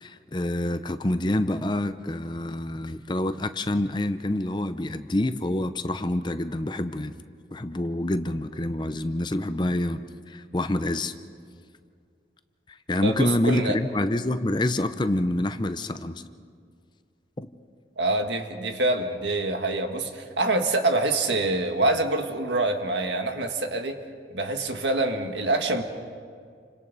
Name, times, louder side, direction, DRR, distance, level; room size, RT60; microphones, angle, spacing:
voice 1, 0.0-7.1 7.5-10.0 10.3-11.1 12.7-16.2 17.4-17.5, left 1 dB, 25° left, 11 dB, 0.6 m, -27 dB
voice 2, 13.0-13.8 18.0-24.0 24.3-25.8, right 2 dB, 90° right, 5 dB, 1.7 m, -25 dB
29.5 x 25.0 x 4.1 m, 2.1 s
head